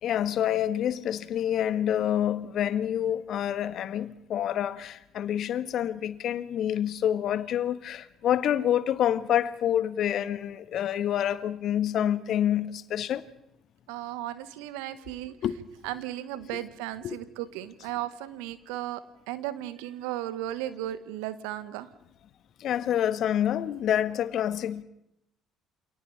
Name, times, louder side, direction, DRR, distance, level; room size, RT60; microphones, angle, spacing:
voice 1, 0.0-13.2 15.4-15.5 16.5-16.6 17.0-17.2 22.6-24.8, left 10 dB, 55° left, 1.4 m, -27 dB
voice 2, 13.9-15.3 15.8-19.0 19.3-21.9, right 13 dB, 75° right, 1.5 m, -35 dB
29.5 x 27.0 x 3.4 m
hypercardioid pair, 55°, 0 cm